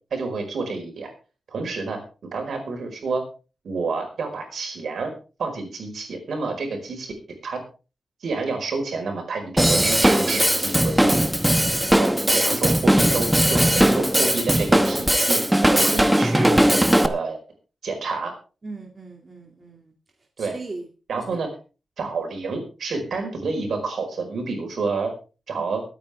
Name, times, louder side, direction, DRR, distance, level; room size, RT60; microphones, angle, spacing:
voice 1, 0.1-1.1 1.5-2.0 2.3-3.2 3.6-5.1 5.4-7.1 7.4-7.6 8.2-11.2 12.0-15.4 15.7-16.6 17.0-17.4 17.8-18.3 20.4-20.5 21.1-21.5 22.0-25.1 25.5-25.8, right 4 dB, 70° right, 4 dB, 4.8 m, -28 dB
Drum kit / Drum, 9.6-17.1, right 1 dB, 5° right, 1.0 m, -19 dB
voice 2, 18.6-19.9 20.4-20.9 22.0-22.1 25.6-25.7, right 3 dB, 30° right, 2 dB, 2.3 m, -39 dB
23.5 x 9.1 x 3.4 m, 0.33 s
wide cardioid pair, 115°, 0 cm